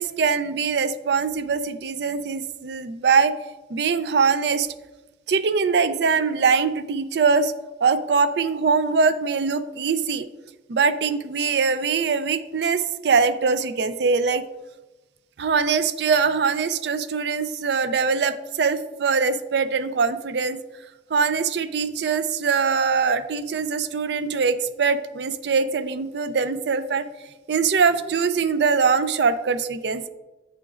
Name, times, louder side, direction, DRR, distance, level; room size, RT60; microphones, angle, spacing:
voice 1, 0.0-3.3 3.7-4.7 5.3-7.5 7.8-10.3 10.7-14.4 15.4-20.6 21.1-27.0 27.5-30.1, right 5 dB, 70° right, 12 dB, 0.4 m, -22 dB
8.9 x 5.1 x 2.4 m, 1.1 s
head